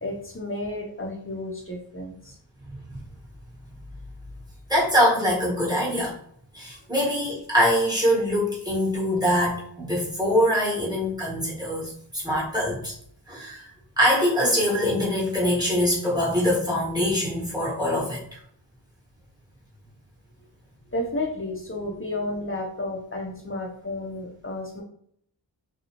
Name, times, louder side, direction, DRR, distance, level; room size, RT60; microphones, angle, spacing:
voice 1, 0.0-2.4 7.0-7.1 20.9-24.8, left 1 dB, 30° left, -1 dB, 0.7 m, -32 dB
voice 2, 4.7-6.1 6.5-12.9 13.3-13.7 14.0-18.2, equal, 10° right, -6 dB, 1.4 m, -23 dB
2.7 x 2.3 x 2.9 m, 0.67 s
wide cardioid pair, 45°, 44 cm